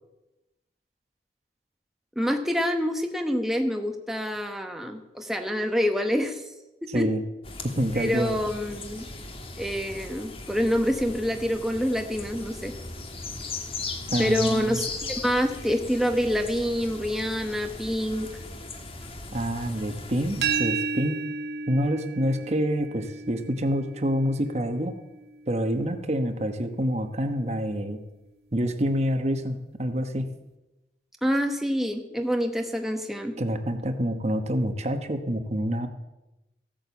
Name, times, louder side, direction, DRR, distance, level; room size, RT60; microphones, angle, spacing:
voice 1, 2.2-6.4 6.9-7.0 7.9-9.0 9.6-12.7 14.2-18.3 31.2-33.4, equal, ahead, 4 dB, 1.0 m, -27 dB
voice 2, 6.9-7.2 7.6-8.4 14.1-14.8 19.3-21.2 21.7-24.9 25.5-28.0 28.5-30.3 33.4-35.9, equal, 40° right, 8 dB, 1.1 m, -27 dB
sound 1, 7.4-20.6, left 3 dB, 30° left, 1.4 m, -38 dB
sound 2, 20.4-26.2, right 5 dB, 60° right, 0.6 m, -33 dB
15.0 x 9.0 x 7.0 m, 1.0 s
head